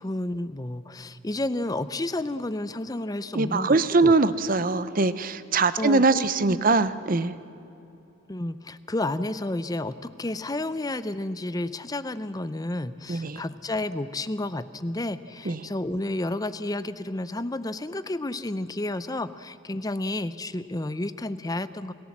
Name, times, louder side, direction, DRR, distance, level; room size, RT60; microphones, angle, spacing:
voice 1, 0.0-4.1 5.8-6.7 8.3-21.9, left 2 dB, 20° left, 13 dB, 0.6 m, -31 dB
voice 2, 3.3-7.3 13.1-13.4 15.5-15.6, right 3 dB, 45° right, 14 dB, 0.7 m, -22 dB
27.5 x 17.5 x 7.4 m, 2.9 s
head